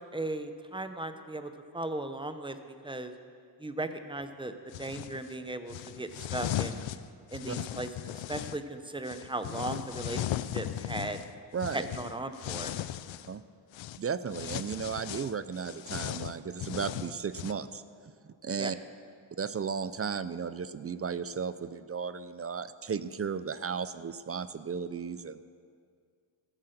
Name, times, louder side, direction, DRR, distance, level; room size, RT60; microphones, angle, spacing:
voice 1, 0.0-2.6 2.8-3.1 3.6-4.5 4.8-6.8 7.3-7.9 8.1-11.2 11.7-12.7 18.6-18.7, right 2 dB, 10° right, 9 dB, 0.8 m, -37 dB
sound 1, 4.7-5.2 5.7-8.6 9.0-13.3 13.7-14.0 14.3-17.5, left 13 dB, 85° left, 0.6 m, -37 dB
voice 2, 11.5-11.9 13.3-13.4 14.0-17.8 18.2-18.8 19.4-25.4, right 6 dB, 35° right, 14 dB, 0.4 m, -35 dB
14.5 x 8.6 x 6.6 m, 2.1 s
wide cardioid pair, 100°, 44 cm